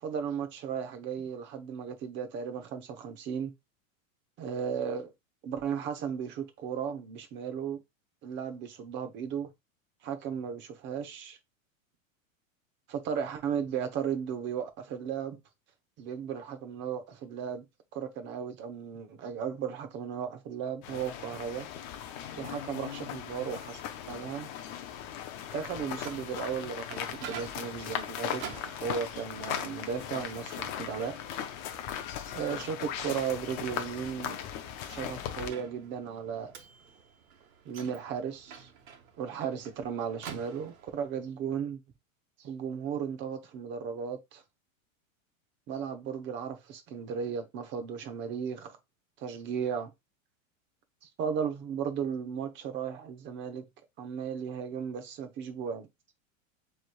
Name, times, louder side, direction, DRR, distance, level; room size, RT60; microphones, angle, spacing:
voice 1, 0.0-3.5 4.4-5.1 5.4-7.8 8.2-9.5 10.0-11.4 12.9-15.4 16.0-17.7 17.9-21.7 22.4-24.5 25.5-28.4 28.8-31.1 32.3-34.4 34.9-36.6 37.6-38.7 39.2-41.8 42.4-44.4 45.7-48.8 49.2-49.9 51.2-53.7 54.0-55.9, right 7 dB, 25° right, 0.8 m, -35 dB
sound 1, 20.8-35.5, left 9 dB, 25° left, 0.3 m, -38 dB
Microwave oven, 25.8-41.1, right 7 dB, 90° right, 1.3 m, -49 dB
7.2 x 3.3 x 2.2 m
supercardioid pair, 150°, 41 cm